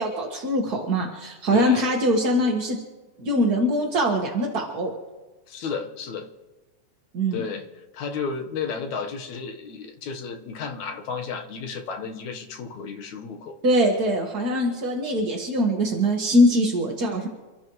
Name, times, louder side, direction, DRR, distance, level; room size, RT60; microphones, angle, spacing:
voice 1, 0.0-2.8 3.2-4.9 7.1-7.4 13.6-17.3, equal, 40° right, 0 dB, 1.6 m, -22 dB
voice 2, 1.5-1.8 5.5-6.3 7.3-7.7 7.9-13.6, left 5 dB, 70° left, 4 dB, 2.6 m, -33 dB
29.5 x 14.0 x 3.2 m, 1.2 s
omnidirectional pair, 3.5 m